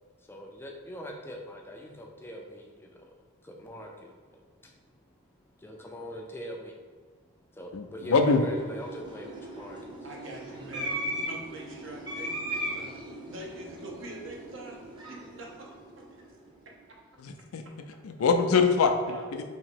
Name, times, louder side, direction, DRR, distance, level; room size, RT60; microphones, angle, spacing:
voice 1, 0.2-3.2 3.4-5.0 5.5-6.8 7.2-10.1, equal, 10° left, 1 dB, 0.3 m, -43 dB
voice 2, 7.7-8.4 17.2-17.6 18.0-18.9 19.3-19.4, left 5 dB, 90° left, 6 dB, 0.4 m, -23 dB
sound 1, 8.0-16.5, right 1 dB, 20° right, 0.7 m, -38 dB
voice 3, 10.0-15.7 16.0-16.3 16.9-17.0 18.5-18.6 19.0-19.3, right 1 dB, 65° right, -1 dB, 0.7 m, -44 dB
2.9 x 2.9 x 4.4 m, 1.5 s
head